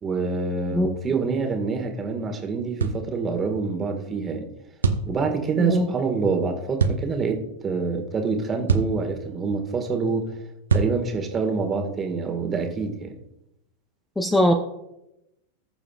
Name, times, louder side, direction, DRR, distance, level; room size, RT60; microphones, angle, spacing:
voice 1, 0.0-4.5 5.1-10.3 10.7-13.1, right 4 dB, 20° right, 3 dB, 1.7 m, -26 dB
sound 1, 2.8-3.0 4.8-5.1 6.8-7.0 8.7-9.0 10.7-11.0, right 5 dB, 70° right, 0.8 m, -22 dB
voice 2, 5.6-5.9 14.2-14.5, left 1 dB, 10° left, 5 dB, 0.8 m, -21 dB
20.0 x 7.0 x 2.4 m, 0.89 s
figure-of-eight pair, 90°, 0 cm